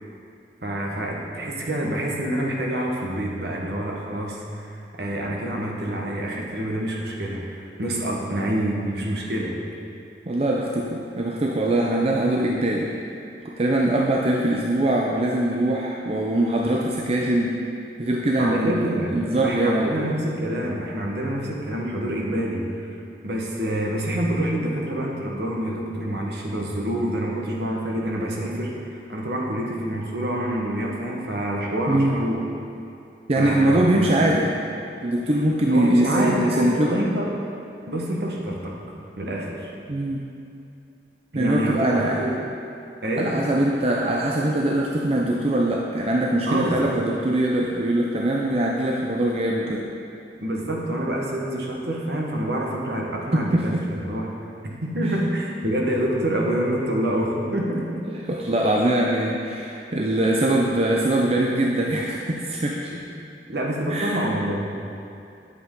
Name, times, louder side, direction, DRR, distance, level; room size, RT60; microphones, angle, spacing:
voice 1, 0.6-9.5 18.4-19.2 19.4-22.9 23.2-32.4 33.3-34.3 35.7-37.3 37.9-38.8 39.2-39.7 41.3-42.3 43.0-43.4 46.5-46.9 50.4-54.3 54.6-58.2 63.5-64.8, right 1 dB, 65° right, -2 dB, 1.4 m, -27 dB
voice 2, 10.3-12.9 13.4-17.6 18.0-18.9 19.1-20.1 31.9-32.2 33.3-34.6 35.0-36.9 39.9-40.2 41.3-42.3 43.2-49.9 53.5-53.8 58.3-62.9 63.9-64.2, right 1 dB, 35° right, -2 dB, 0.6 m, -22 dB
9.9 x 8.2 x 3.9 m, 2.6 s
head